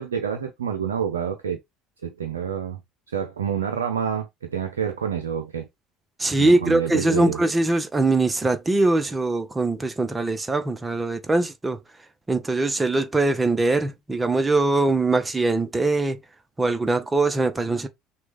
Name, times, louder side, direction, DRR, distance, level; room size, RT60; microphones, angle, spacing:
voice 1, 0.0-1.6 2.0-2.8 3.1-5.7 6.4-7.4, right 8 dB, 75° right, 0.5 m, -28 dB
voice 2, 6.2-11.8 12.3-16.2 16.6-17.9, right 2 dB, 15° right, 0.8 m, -22 dB
6.1 x 2.3 x 3.3 m
figure-of-eight pair, 60°, 0 cm